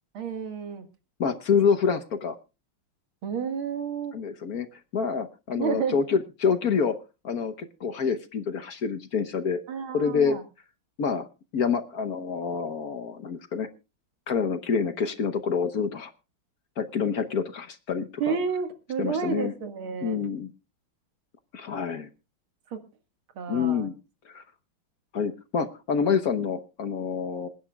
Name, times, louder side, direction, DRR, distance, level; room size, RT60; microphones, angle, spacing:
voice 1, 0.1-0.9 3.2-4.1 5.5-6.0 9.7-10.4 18.2-20.2 22.7-22.8 23.4-23.9, right 6 dB, 85° right, 8 dB, 2.6 m, -30 dB
voice 2, 1.2-2.4 4.1-4.7 4.9-7.0 7.2-9.6 9.9-10.4 11.0-11.3 11.5-13.7 14.3-16.1 16.8-18.3 19.0-19.5 20.0-20.5 21.5-22.1 23.5-23.9 24.2-24.4 25.1-27.5, left 6 dB, 55° left, 10 dB, 1.3 m, -27 dB
27.0 x 10.0 x 2.3 m, 0.30 s
omnidirectional pair, 2.2 m